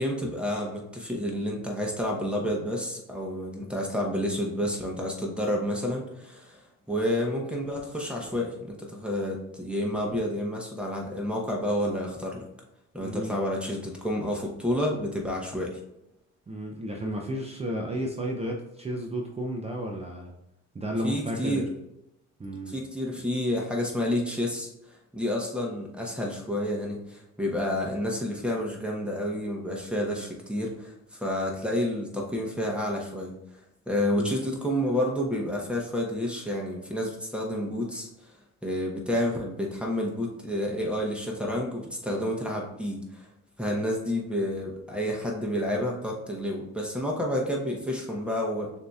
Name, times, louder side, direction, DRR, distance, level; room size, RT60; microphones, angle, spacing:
voice 1, 0.0-6.6 6.9-12.4 12.9-15.8 21.0-21.6 22.7-24.7 25.1-33.3 33.9-38.1 38.6-43.3 43.6-48.7, left 1 dB, 5° right, -1 dB, 1.0 m, -29 dB
voice 2, 13.0-13.4 16.5-20.3 20.7-21.8 22.4-22.7 34.1-34.4, equal, 20° right, 0 dB, 0.5 m, -32 dB
6.4 x 2.8 x 2.3 m, 0.85 s
cardioid pair, 90°, 30 cm